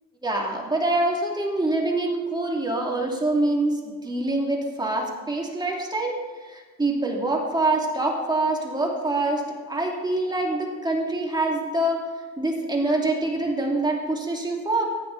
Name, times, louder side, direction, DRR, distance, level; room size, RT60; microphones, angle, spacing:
voice 1, 0.2-12.0 12.4-14.9, right 2 dB, 15° right, -1 dB, 2.6 m, -25 dB
14.0 x 9.3 x 4.1 m, 1.4 s
cardioid pair, 90°, 30 cm